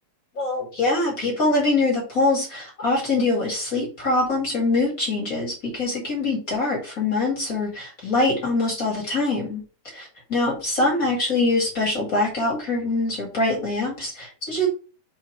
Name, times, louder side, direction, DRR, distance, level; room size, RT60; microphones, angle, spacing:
voice 1, 0.3-14.7, left 2 dB, 35° left, -2 dB, 1.3 m, -24 dB
7.5 x 2.9 x 4.6 m, 0.35 s
omnidirectional pair, 5.0 m